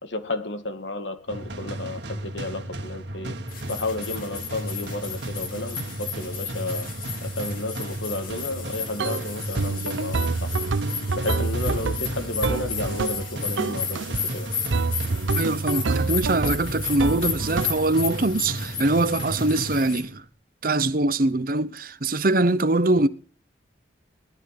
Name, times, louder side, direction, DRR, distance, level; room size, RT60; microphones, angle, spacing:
voice 1, 0.0-3.4 3.7-6.9 7.2-10.5 11.1-14.0 14.3-14.5, left 2 dB, 75° left, 2.0 m, -32 dB
sound 1, 1.3-20.3, right 1 dB, 65° right, 2.1 m, -34 dB
sound 2, 3.5-20.0, left 7 dB, 50° left, 4.4 m, -34 dB
sound 3, 9.0-9.3 9.6-13.3 13.6-14.3 14.7-17.9, right 4 dB, 80° right, 0.7 m, -27 dB
voice 2, 15.4-20.2 20.6-23.1, right 2 dB, 45° right, 0.9 m, -23 dB
18.5 x 13.0 x 5.9 m
head